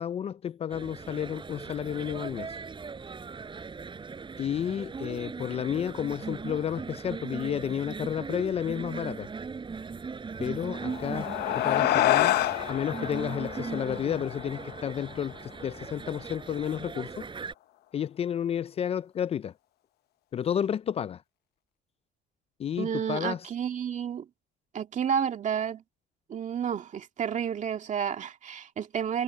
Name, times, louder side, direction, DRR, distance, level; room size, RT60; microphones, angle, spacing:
voice 1, 0.0-2.6 4.4-9.3 10.4-12.4 12.7-17.3 17.9-19.5 20.3-21.2 22.6-23.4, left 9 dB, 35° left, 0.4 m, -31 dB
sound 1, 0.7-17.5, right 5 dB, 30° right, 7.9 m, -39 dB
sound 2, 10.7-15.5, left 14 dB, 70° left, 1.0 m, -28 dB
voice 2, 22.8-24.3 24.7-25.8 26.3-29.2, right 8 dB, 45° right, 2.2 m, -31 dB
cardioid pair, 110°, 17 cm